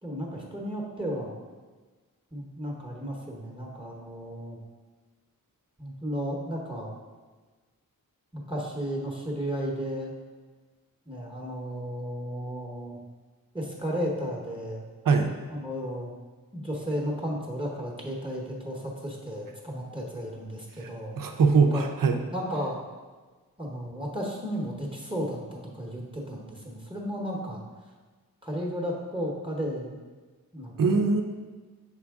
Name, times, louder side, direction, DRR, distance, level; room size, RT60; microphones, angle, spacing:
voice 1, 0.0-1.4 2.3-4.6 5.8-7.0 8.3-10.1 11.1-13.0 13.5-14.8 15.5-16.1 16.5-21.2 21.7-21.8 22.3-22.8 23.6-27.6 28.4-30.0 30.5-31.0, equal, 15° right, -2 dB, 0.9 m, -34 dB
voice 2, 21.2-22.2 30.8-31.2, right 4 dB, 65° right, 5 dB, 0.6 m, -22 dB
5.8 x 4.6 x 3.5 m, 1.3 s
wide cardioid pair, 70°, 35 cm